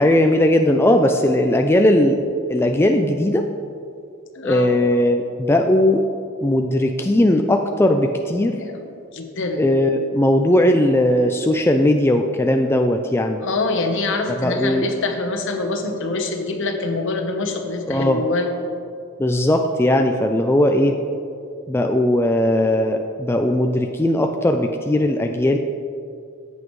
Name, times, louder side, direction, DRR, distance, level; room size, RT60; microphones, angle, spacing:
voice 1, 0.0-2.2 2.5-3.5 4.4-6.0 6.4-8.6 9.6-13.4 14.4-14.9 17.9-18.2 19.2-21.0 21.7-25.6, left 1 dB, 10° left, 4 dB, 0.3 m, -18 dB
voice 2, 4.3-4.8 8.5-9.6 13.4-18.5, left 3 dB, 60° left, 5 dB, 1.0 m, -25 dB
14.0 x 8.0 x 3.2 m, 2.4 s
head